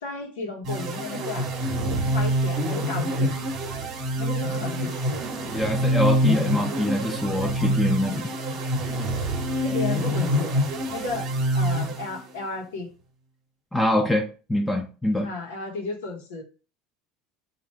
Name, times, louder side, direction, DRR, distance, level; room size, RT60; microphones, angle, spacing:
voice 1, 0.0-1.5 1.8-3.3 4.2-5.3 9.6-10.5 10.9-11.3 11.5-12.9 15.2-16.4, left 3 dB, 90° left, 0 dB, 1.0 m, -34 dB
sound 1, 0.6-12.4, equal, 55° right, 0.9 m, -26 dB
voice 2, 5.5-8.3 13.7-15.3, left 1 dB, 10° left, 3 dB, 0.5 m, -24 dB
3.2 x 2.5 x 4.3 m, 0.35 s
hypercardioid pair, 85°, 0 cm